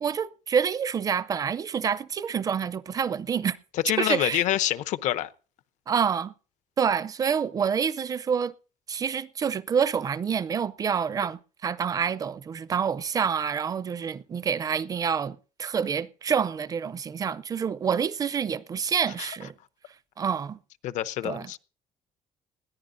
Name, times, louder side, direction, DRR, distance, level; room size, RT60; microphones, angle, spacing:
voice 1, 0.0-3.6 4.0-4.4 5.9-6.3 6.8-8.5 8.9-19.5 20.2-20.6 21.2-21.5, right 7 dB, 30° right, 0.5 m, -27 dB
voice 2, 3.8-5.3 19.2-19.3 20.8-21.6, left 13 dB, 80° left, 0.7 m, -27 dB
20.5 x 14.0 x 2.6 m
cardioid pair, 155°, 12 cm